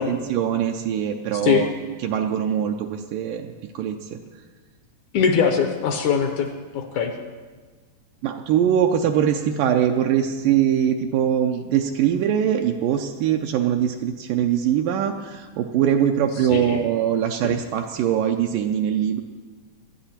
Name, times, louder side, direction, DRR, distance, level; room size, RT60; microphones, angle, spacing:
voice 1, 0.1-1.7 2.0-4.2 8.2-19.2, right 9 dB, 80° right, 3 dB, 2.1 m, -22 dB
voice 2, 5.1-6.5 6.7-7.1 16.5-16.8 17.4-17.6, left 7 dB, 75° left, 5 dB, 1.9 m, -21 dB
18.0 x 12.0 x 4.3 m, 1.4 s
omnidirectional pair, 4.1 m